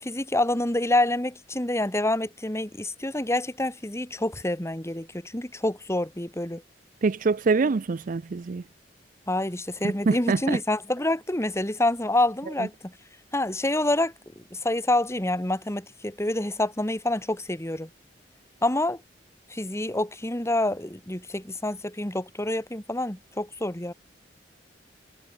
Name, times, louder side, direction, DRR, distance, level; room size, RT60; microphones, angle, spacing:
voice 1, 0.0-6.6 9.3-12.9 13.3-17.9 18.6-19.0 19.5-23.9, left 1 dB, 15° left, 2.5 m, -27 dB
voice 2, 7.0-8.6 10.1-10.4, right 4 dB, 50° right, 0.4 m, -24 dB
head